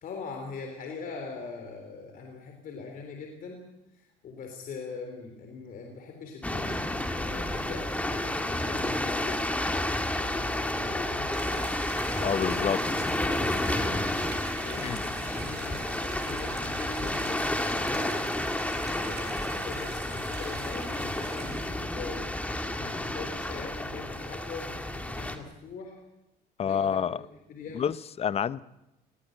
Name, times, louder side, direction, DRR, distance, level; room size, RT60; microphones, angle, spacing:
voice 1, 0.0-3.6 3.9-9.6 10.2-11.8 12.3-14.1 14.6-18.3 18.7-26.0 26.6-27.2 27.5-27.9, left 5 dB, 55° left, 3 dB, 3.7 m, -42 dB
sound 1, 6.4-25.4, left 1 dB, 10° left, 2.0 m, -31 dB
sound 2, 11.3-21.7, right 6 dB, 80° right, 7.7 m, -45 dB
voice 2, 12.2-12.8 14.8-15.1 26.6-27.2 27.7-28.6, left 8 dB, 35° left, 17 dB, 0.7 m, -28 dB
20.0 x 17.5 x 9.1 m, 0.91 s
cardioid pair, 110°, 17 cm